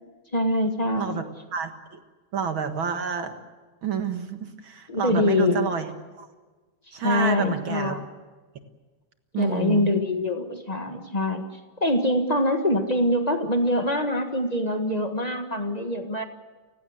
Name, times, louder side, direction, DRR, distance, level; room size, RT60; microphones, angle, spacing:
voice 1, 0.3-1.2 4.9-5.7 6.9-8.0 9.4-11.4 11.8-16.2, left 1 dB, 35° left, 5 dB, 0.6 m, -24 dB
voice 2, 1.5-2.0 2.3-3.3 3.8-6.3 6.9-8.0 9.3-9.9, right 6 dB, 50° right, 7 dB, 2.0 m, -29 dB
30.0 x 16.0 x 7.9 m, 1.3 s
omnidirectional pair, 3.4 m